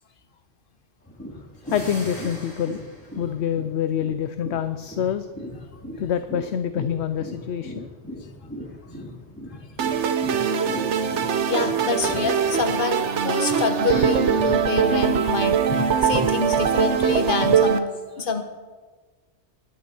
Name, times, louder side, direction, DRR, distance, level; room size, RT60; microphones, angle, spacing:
sound 1, 1.0-14.1 14.4-17.5, left 1 dB, 10° left, 3.2 m, -38 dB
sound 2, 1.6-3.2, equal, 30° left, 5.2 m, -38 dB
voice 1, 1.7-2.8 3.2-5.3 6.0-7.9, left 9 dB, 65° left, 10 dB, 0.9 m, -26 dB
sound 3, 9.8-17.8, right 7 dB, 70° right, 1.1 m, -22 dB
voice 2, 11.5-18.4, left 4 dB, 45° left, 7 dB, 1.4 m, -27 dB
20.5 x 10.0 x 4.4 m, 1.4 s
omnidirectional pair, 1.3 m